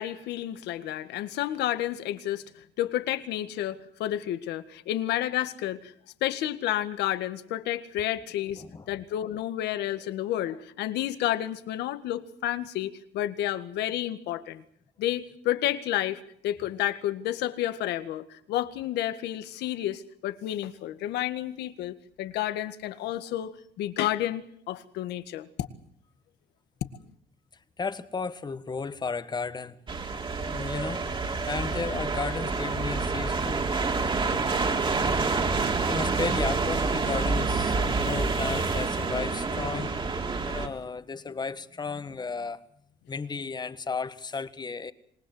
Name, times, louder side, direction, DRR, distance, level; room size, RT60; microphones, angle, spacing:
voice 1, 0.0-2.4 2.8-5.9 6.2-14.6 15.0-25.5, left 13 dB, 80° left, 11 dB, 1.9 m, -30 dB
voice 2, 8.6-9.0 27.8-29.7 30.5-31.0 31.4-33.6 35.8-39.9 40.4-42.6 43.1-44.9, left 4 dB, 25° left, 13 dB, 1.5 m, -34 dB
sound 1, 29.9-40.7, right 4 dB, 30° right, 3.2 m, -27 dB
26.5 x 20.0 x 7.9 m, 0.66 s
cardioid pair, 110°, 17 cm